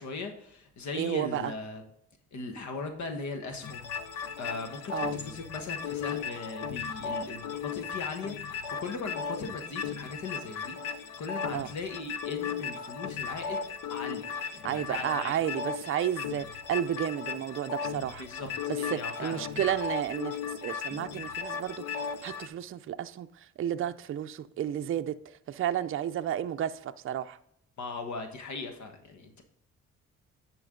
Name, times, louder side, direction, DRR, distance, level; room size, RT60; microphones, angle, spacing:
voice 1, 0.0-1.8 2.3-3.9 4.4-13.6 13.9-14.2 14.5-15.3 18.2-18.5 18.8-19.6 27.8-29.4, left 3 dB, 70° left, 1.3 m, -39 dB
voice 2, 0.9-1.5 4.9-5.2 11.5-11.7 14.6-18.2 18.7-21.8 22.2-27.4, right 10 dB, 45° right, 0.5 m, -32 dB
sound 1, 3.6-22.5, left 6 dB, 90° left, 0.7 m, -36 dB
10.5 x 4.6 x 3.7 m
cardioid pair, 90°, 30 cm